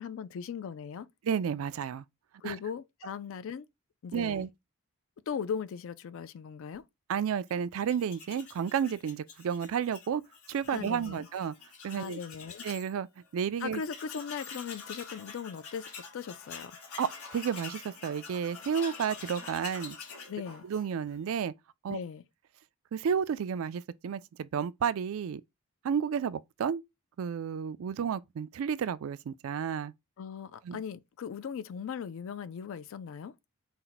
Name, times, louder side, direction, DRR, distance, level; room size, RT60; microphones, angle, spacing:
voice 1, 0.0-1.1 2.4-3.7 4.0-4.4 5.3-6.8 10.7-11.3 11.9-12.6 13.6-16.7 20.3-20.6 21.9-22.2 30.2-33.3, left 7 dB, 65° left, 0.4 m, -38 dB
voice 2, 1.2-2.0 2.4-2.6 4.1-4.5 7.1-10.2 10.5-11.5 11.8-12.2 12.6-13.1 13.3-13.8 17.0-20.0 20.6-21.5 21.8-22.0 22.9-25.4 25.8-26.8 27.2-29.9 30.6-30.8, right 7 dB, 70° right, 0.3 m, -31 dB
Tools, 7.8-12.9 13.3-13.4 13.6-21.2, left 5 dB, 90° left, 1.1 m, -46 dB
4.3 x 2.1 x 3.9 m
head